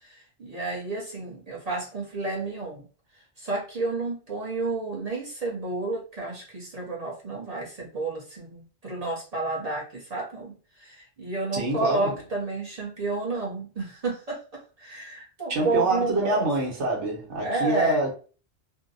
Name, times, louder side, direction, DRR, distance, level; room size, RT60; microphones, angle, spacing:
voice 1, 0.0-2.9 3.4-16.5 17.4-18.0, right 3 dB, 40° right, 0.7 m, -31 dB
voice 2, 11.5-12.2 15.5-18.1, right 2 dB, 85° right, 1.2 m, -26 dB
2.6 x 2.0 x 2.5 m
omnidirectional pair, 1.2 m